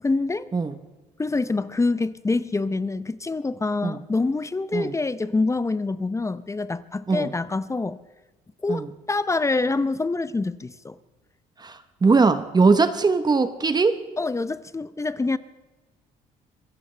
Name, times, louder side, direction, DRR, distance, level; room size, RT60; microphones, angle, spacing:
voice 1, 0.0-0.5 1.2-8.0 8.6-11.0 14.2-15.4, left 3 dB, 20° left, 0.7 m, -26 dB
voice 2, 11.6-14.0, right 4 dB, 25° right, 1.0 m, -20 dB
25.5 x 16.5 x 3.4 m
cardioid pair, 85°, 16 cm